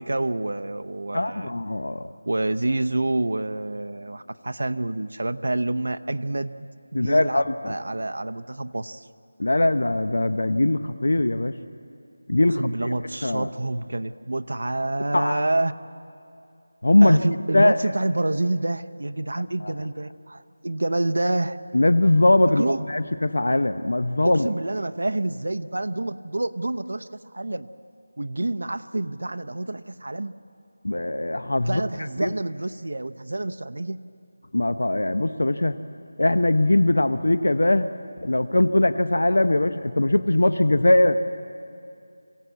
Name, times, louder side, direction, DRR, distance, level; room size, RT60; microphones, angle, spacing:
voice 1, 0.0-1.5 2.3-6.7 6.9-9.1 12.6-15.7 17.0-21.6 22.6-22.8 24.2-27.7 28.2-30.4 31.7-34.0, right 2 dB, 70° right, 9 dB, 0.7 m, -28 dB
voice 2, 1.1-2.1 6.9-7.7 9.4-11.5 12.3-12.9 13.2-13.5 15.1-15.4 16.8-17.2 17.5-17.8 19.6-19.7 21.7-24.5 30.8-31.8 32.2-32.3 34.5-35.8 36.2-37.9 38.2-41.2, left 1 dB, 80° left, 11 dB, 0.9 m, -21 dB
27.0 x 16.5 x 8.4 m, 2.5 s
figure-of-eight pair, 175°, 0 cm